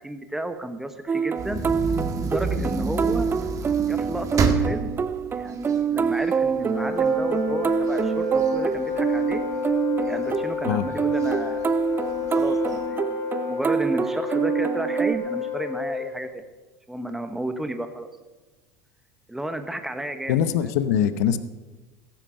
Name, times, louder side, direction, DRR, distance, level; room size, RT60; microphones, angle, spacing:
voice 1, 0.0-1.6 2.2-3.3 3.9-5.0 5.3-9.4 10.0-11.7 12.3-13.2 13.5-16.4 16.9-18.1 19.3-20.7, right 1 dB, 5° right, 8 dB, 1.1 m, -32 dB
sound 1, 1.1-15.2, right 6 dB, 25° right, 0.5 m, -26 dB
sound 2, 1.4-6.6 7.0-7.1 7.5-9.5 10.1-10.6 11.2-11.3 11.6-11.7 12.2-12.8, right 3 dB, 40° right, 1.8 m, -29 dB
Wind instrument woodwind instrument, 6.4-16.3, left 6 dB, 25° left, 5.0 m, -31 dB
voice 2, 20.3-21.4, left 9 dB, 75° left, 12 dB, 0.9 m, -22 dB
15.5 x 8.9 x 5.7 m, 1.2 s
hypercardioid pair, 95°, 9 cm